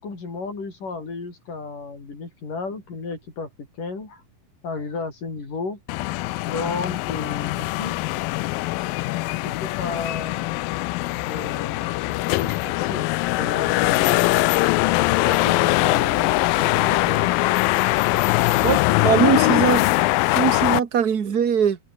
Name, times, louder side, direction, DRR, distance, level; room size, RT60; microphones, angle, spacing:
voice 1, 0.0-3.5 3.8-4.2 4.6-5.8 6.5-8.0 9.4-10.7 11.2-13.1 13.4-14.4 15.2-17.3, left 4 dB, 60° left, 8.3 m, -33 dB
sound 1, 5.9-20.8, left 20 dB, 80° left, 2.3 m, -22 dB
voice 2, 18.6-19.8 20.3-21.8, right 7 dB, 45° right, 1.2 m, -21 dB
omnidirectional pair, 4.3 m